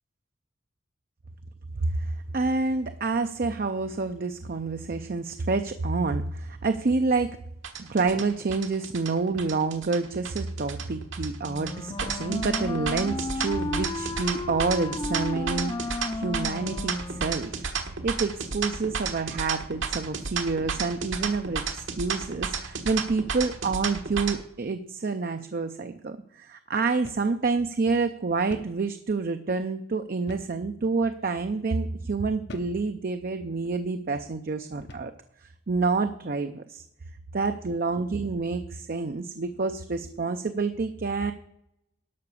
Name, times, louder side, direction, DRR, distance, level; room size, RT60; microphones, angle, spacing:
voice 1, 1.8-7.4 7.8-35.1 35.4-36.8 37.3-41.3, right 4 dB, 45° right, 8 dB, 0.5 m, -28 dB
sound 1, 7.6-24.3, right 5 dB, 70° right, 1.3 m, -32 dB
Wind instrument woodwind instrument, 11.4-17.5, left 2 dB, 25° left, 0.4 m, -33 dB
sound 2, 27.1-27.4 27.7-27.8 28.5-28.8 30.3-30.6 31.3-31.5 32.5-32.8 33.6-33.8 34.8-35.2, left 2 dB, 55° left, 0.8 m, -45 dB
12.0 x 5.8 x 6.9 m, 0.79 s
head